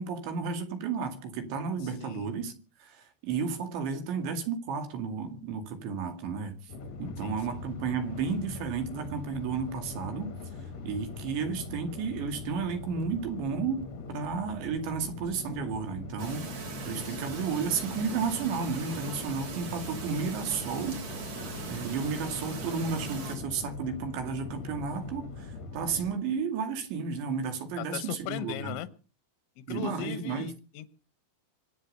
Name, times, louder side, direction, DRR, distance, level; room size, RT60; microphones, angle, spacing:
voice 1, 0.0-2.5 2.8-6.7 7.0-10.3 10.9-21.0 21.7-28.8 29.7-30.5, right 5 dB, 80° right, 4.5 m, -33 dB
voice 2, 1.8-2.4 7.2-7.6 17.1-17.2 27.8-28.9 29.6-30.9, left 13 dB, 90° left, 3.5 m, -39 dB
sound 1, 6.7-26.1, left 3 dB, 60° left, 1.8 m, -42 dB
Chirp tweet, 16.2-23.4, right 4 dB, 40° right, 3.6 m, -40 dB
25.0 x 8.8 x 6.6 m
omnidirectional pair, 5.1 m